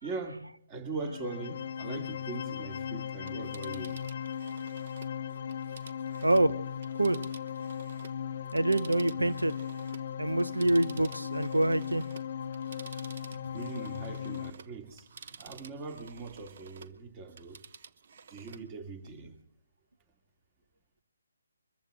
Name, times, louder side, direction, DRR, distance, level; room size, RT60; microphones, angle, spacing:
voice 1, 0.0-4.0 13.5-15.1 15.4-17.6 18.3-19.4, right 4 dB, 25° right, 4 dB, 2.6 m, -41 dB
sound 1, 0.9-14.5, left 8 dB, 45° left, 0.5 m, -37 dB
Telephone, 3.1-8.2 8.5-17.0 17.3-18.7 19.1-19.2, right 6 dB, 50° right, 1.0 m, -52 dB
voice 2, 6.2-6.6 6.9-7.2 8.5-9.6 10.2-12.1, right 1 dB, 85° right, 14 dB, 0.7 m, -26 dB
23.5 x 14.5 x 3.8 m, 0.70 s
figure-of-eight pair, 145°, 0 cm